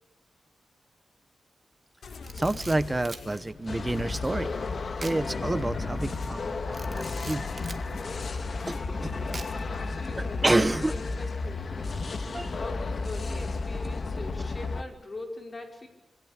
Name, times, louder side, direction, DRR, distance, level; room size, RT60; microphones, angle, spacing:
sound 1, 2.0-10.0, left 4 dB, 75° left, 2.4 m, -42 dB
Camera, 2.1-3.3 5.0-5.2 5.6-5.7 6.7-7.8 9.3-9.8, right 4 dB, 35° right, 1.9 m, -42 dB
voice 1, 2.3-4.5 5.0-7.6 8.7-9.1 10.2-11.0 12.3-12.5, right 2 dB, 15° right, 15 dB, 0.8 m, -29 dB
sound 2, 3.7-14.8, left 3 dB, 45° left, 1.8 m, -33 dB
voice 2, 9.7-10.5 10.9-11.6 12.5-15.9, left 2 dB, 30° left, 3 dB, 5.0 m, -41 dB
25.5 x 22.0 x 8.9 m, 1.0 s
wide cardioid pair, 150°, 0 cm